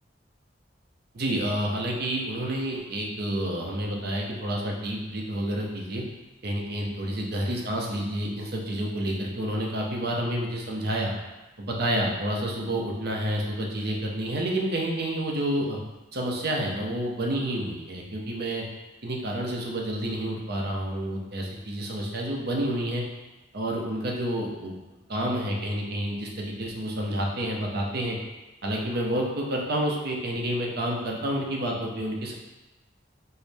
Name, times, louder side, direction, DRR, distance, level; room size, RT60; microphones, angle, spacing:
voice 1, 1.1-6.0 6.4-11.1 11.6-15.8 16.1-18.6 19.0-23.0 23.5-24.8 25.1-28.2 28.6-32.3, right 1 dB, 55° right, -1 dB, 0.7 m, -29 dB
4.4 x 2.0 x 3.3 m, 1.1 s
head